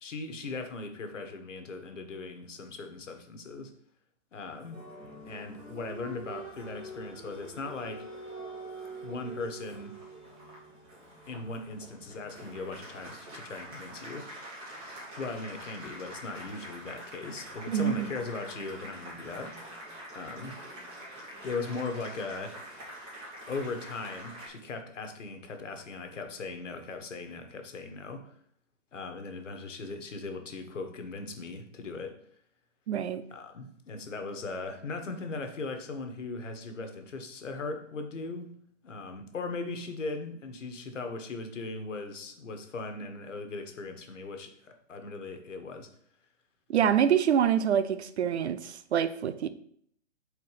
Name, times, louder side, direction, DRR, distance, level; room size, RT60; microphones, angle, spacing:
voice 1, 0.0-3.7 4.3-4.8 5.3-8.0 9.0-9.9 11.3-14.3 15.2-19.5 20.1-20.6 21.4-22.5 23.5-28.3 28.9-32.2 33.3-38.5 38.8-45.9, left 3 dB, 70° left, 1.5 m, -38 dB
Applause, 4.5-24.5, right 1 dB, 15° right, 2.0 m, -45 dB
voice 2, 17.7-18.1 32.9-33.2 46.7-49.5, right 9 dB, 60° right, 0.7 m, -26 dB
4.9 x 4.4 x 5.7 m
hypercardioid pair, 145°, 38 cm